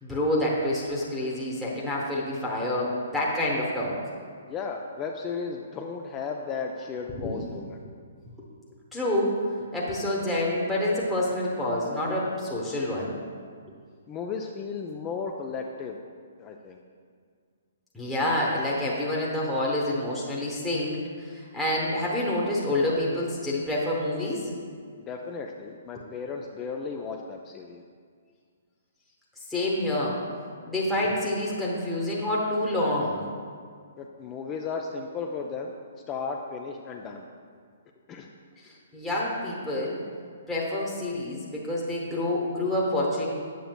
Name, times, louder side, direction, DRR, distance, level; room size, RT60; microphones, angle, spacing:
voice 1, 0.0-3.9 7.1-7.3 8.9-9.5 9.7-13.2 17.9-24.5 29.5-30.2 30.7-33.2 38.9-40.0 40.5-43.3, left 1 dB, 5° left, -7 dB, 1.0 m, -27 dB
voice 2, 4.5-7.8 14.1-16.0 16.4-16.8 25.1-27.8 34.0-35.7 36.1-37.3 38.1-38.3, left 5 dB, 25° left, 2 dB, 0.3 m, -35 dB
7.6 x 6.7 x 2.2 m, 2.1 s
figure-of-eight pair, 130°, 0 cm